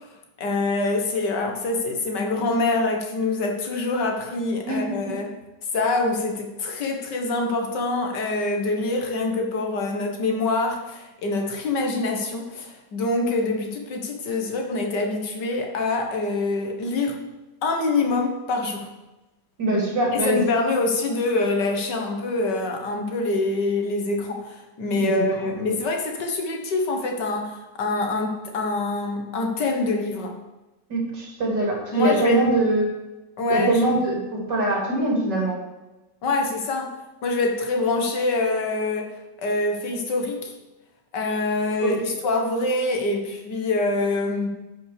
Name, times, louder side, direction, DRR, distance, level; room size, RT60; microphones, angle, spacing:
voice 1, 0.4-5.3 5.7-17.2 17.6-18.9 20.1-30.3 31.9-32.4 33.4-33.8 36.2-36.9 37.2-39.1 39.4-40.5 41.1-44.5, left 2 dB, 75° left, 3 dB, 2.0 m, -25 dB
voice 2, 19.6-20.4 24.9-25.7 30.9-32.9 33.5-35.6 41.8-41.9, right 2 dB, 75° right, -2 dB, 3.5 m, -23 dB
9.6 x 5.6 x 6.7 m, 1.0 s
omnidirectional pair, 1.9 m